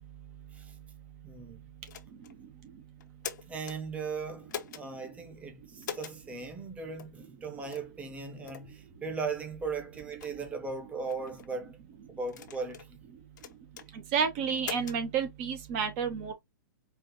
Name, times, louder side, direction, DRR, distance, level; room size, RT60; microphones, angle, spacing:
voice 1, 1.2-1.6 3.5-11.8 12.2-13.0, right 4 dB, 10° right, 1.0 m, -38 dB
sound 1, 1.9-2.3 3.0-3.8 4.5-4.8 5.8-6.2 7.0-7.1 7.7-7.9 8.5-8.7 9.3-9.4 10.0-10.3 11.1-11.5 12.3-12.9 13.4-13.9 14.6-15.0, left 8 dB, 60° left, 0.8 m, -42 dB
voice 2, 14.1-16.3, right 6 dB, 40° right, 0.9 m, -30 dB
4.5 x 2.5 x 2.7 m
hypercardioid pair, 125°, 11 cm